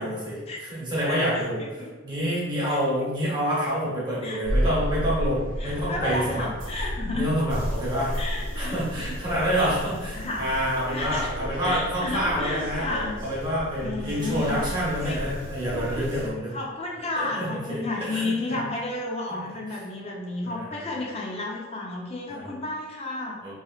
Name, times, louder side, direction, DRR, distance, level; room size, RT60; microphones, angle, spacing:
voice 1, 0.0-1.6 2.0-6.5 7.1-8.1 8.5-12.9 13.2-16.5 17.1-18.6 19.3-19.4 19.7-19.8 20.4-21.0 22.3-22.6 23.4-23.5, equal, 20° right, -7 dB, 1.0 m, -28 dB
voice 2, 1.1-1.9 2.7-2.8 4.2-4.7 5.6-7.3 8.1-8.8 10.2-10.5 10.9-11.3 11.6-13.2 13.8-14.6 15.0-15.2 16.5-23.4, left 2 dB, 30° left, -2 dB, 0.5 m, -32 dB
sound 1, 4.4-16.3, equal, 60° right, 0.8 m, -32 dB
3.1 x 2.8 x 2.3 m, 1.2 s
head